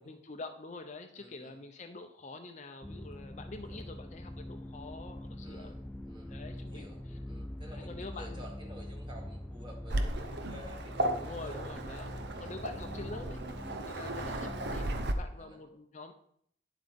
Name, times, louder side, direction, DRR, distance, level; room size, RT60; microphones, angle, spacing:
voice 1, 0.0-5.7 6.3-7.2 7.7-8.5 11.2-13.4 13.8-16.1, left 3 dB, 40° left, 5 dB, 0.7 m, -46 dB
voice 2, 1.2-1.5 3.5-3.8 5.4-7.0 7.3-11.6 12.3-12.7 15.3-15.6, equal, 25° right, 0 dB, 2.0 m, -52 dB
sound 1, 2.8-15.1, left 1 dB, 5° left, 0.3 m, -43 dB
Waves surf, 9.9-15.1, right 1 dB, 60° right, 0.8 m, -35 dB
10.5 x 7.6 x 3.6 m, 0.67 s
head